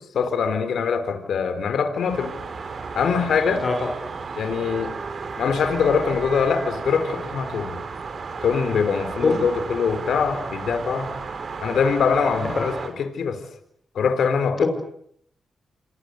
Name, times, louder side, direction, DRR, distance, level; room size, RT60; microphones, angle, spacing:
voice 1, 0.1-2.3 2.9-3.6 4.4-4.9 5.4-7.8 8.4-11.1 11.6-12.7 13.0-13.4 14.0-14.7, left 6 dB, 75° left, 10 dB, 4.1 m, -23 dB
sound 1, 1.9-12.9, right 4 dB, 60° right, 5.4 m, -33 dB
voice 2, 3.6-4.0 9.2-9.4 12.5-12.8 14.6-14.7, left 4 dB, 55° left, 4 dB, 6.6 m, -23 dB
28.0 x 26.5 x 8.1 m, 0.70 s
supercardioid pair, 55°, 0 cm